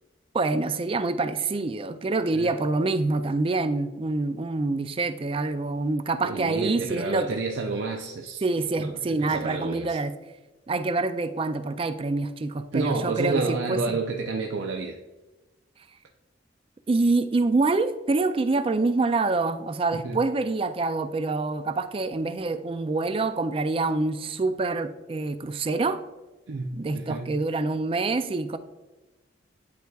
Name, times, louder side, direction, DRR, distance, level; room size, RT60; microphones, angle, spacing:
voice 1, 0.3-7.3 8.4-10.1 10.7-14.0 16.9-26.0 26.8-28.6, right 3 dB, 30° right, 11 dB, 0.3 m, -26 dB
voice 2, 6.2-8.4 8.8-8.9 9.2-10.0 12.7-15.0 20.0-20.2 26.5-27.3, right 3 dB, 80° right, 2 dB, 0.5 m, -30 dB
10.5 x 4.6 x 2.3 m, 1.1 s
head